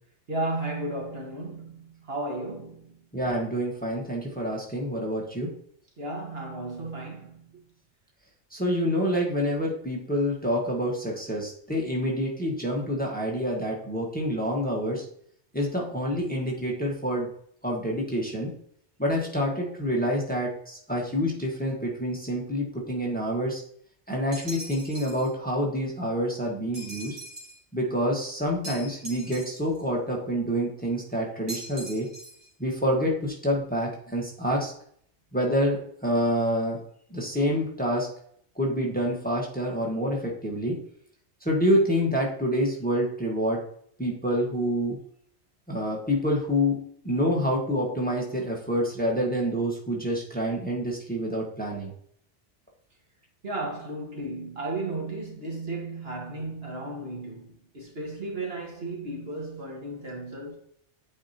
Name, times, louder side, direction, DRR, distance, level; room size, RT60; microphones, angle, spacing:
voice 1, 0.3-2.9 6.0-7.6 53.4-60.6, right 2 dB, 60° right, 1.8 m, -34 dB
voice 2, 3.1-5.5 8.5-15.0 15.5-17.3 17.6-18.5 19.0-23.6 24.1-27.2 27.7-32.1 32.6-34.7 35.3-36.8 37.1-38.1 38.5-40.8 41.4-43.6 44.0-45.0 45.7-46.8 47.0-51.9, equal, 10° left, 1.5 m, -27 dB
sound 1, 24.3-25.3 26.7-27.6 28.6-29.8 31.5-32.5, right 1 dB, 80° right, 1.9 m, -41 dB
8.8 x 4.7 x 2.9 m
omnidirectional pair, 1.2 m